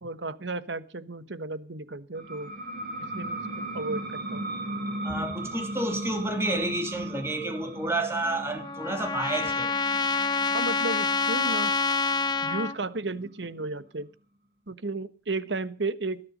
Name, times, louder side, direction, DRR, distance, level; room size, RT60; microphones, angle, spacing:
voice 1, 0.0-2.5 3.0-4.5 10.5-11.8 12.4-14.1 14.7-16.2, right 3 dB, 85° right, 1.3 m, -34 dB
sound 1, 2.1-13.4, right 1 dB, 60° right, 6.8 m, -37 dB
voice 2, 5.0-9.7, right 1 dB, 15° right, 2.9 m, -30 dB
Trumpet, 8.2-12.8, left 4 dB, 25° left, 0.9 m, -27 dB
20.0 x 13.5 x 5.2 m
head